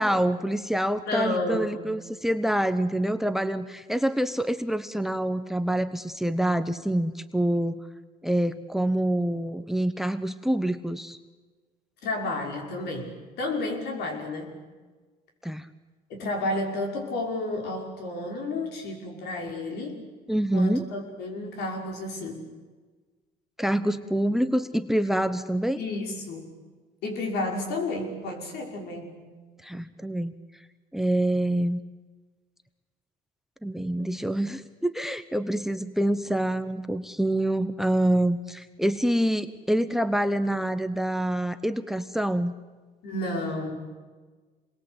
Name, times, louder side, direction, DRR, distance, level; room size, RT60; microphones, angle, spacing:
voice 1, 0.0-7.8 8.2-11.2 15.4-15.7 20.3-20.9 23.6-25.8 29.6-30.3 30.9-31.8 33.6-42.5, right 1 dB, ahead, 13 dB, 1.0 m, -26 dB
voice 2, 1.1-1.7 12.0-14.6 16.1-20.0 20.5-22.5 25.7-26.5 27.0-29.2 43.0-43.7, left 2 dB, 75° left, 2 dB, 5.9 m, -31 dB
27.0 x 21.5 x 8.1 m, 1.4 s
cardioid pair, 110°, 17 cm